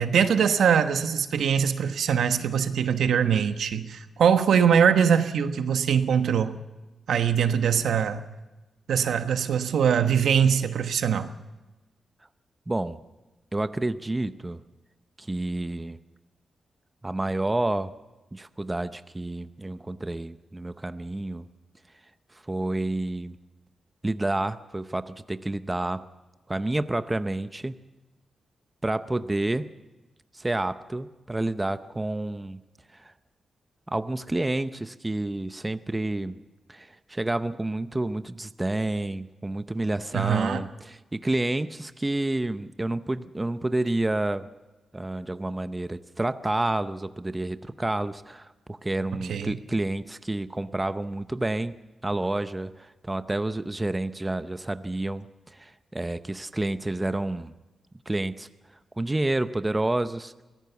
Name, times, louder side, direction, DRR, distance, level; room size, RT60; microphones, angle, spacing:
voice 1, 0.0-6.6 7.1-8.2 8.9-11.3 40.1-40.6 49.3-49.5, right 7 dB, 85° right, 9 dB, 1.2 m, -22 dB
voice 2, 12.7-13.0 13.5-14.6 15.2-16.0 17.0-18.0 18.3-21.5 22.5-23.4 24.0-26.0 26.5-27.8 28.8-29.7 30.3-32.6 32.9-33.1 33.9-36.4 36.7-44.5 44.9-51.8 52.0-57.5 58.1-58.5 59.0-60.3, right 2 dB, 15° right, 11 dB, 0.7 m, -29 dB
23.5 x 16.5 x 7.1 m, 1.1 s
wide cardioid pair, 135°, 0 cm